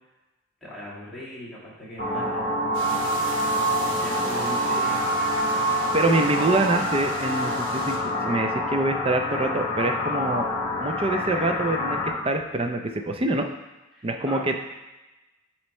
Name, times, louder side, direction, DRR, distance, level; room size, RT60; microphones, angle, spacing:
voice 1, 0.6-2.4 2.8-3.4 3.7-5.2 13.9-14.6, equal, ahead, -10 dB, 1.9 m, -39 dB
sound 1, 2.0-12.1, equal, 30° left, 1.8 m, -26 dB
sound 2, 2.7-8.0, right 2 dB, 80° right, 1.0 m, -38 dB
voice 2, 5.7-10.5 10.8-13.5 14.0-14.6, right 2 dB, 30° right, 5 dB, 0.5 m, -25 dB
7.9 x 3.2 x 4.2 m, 1.0 s
head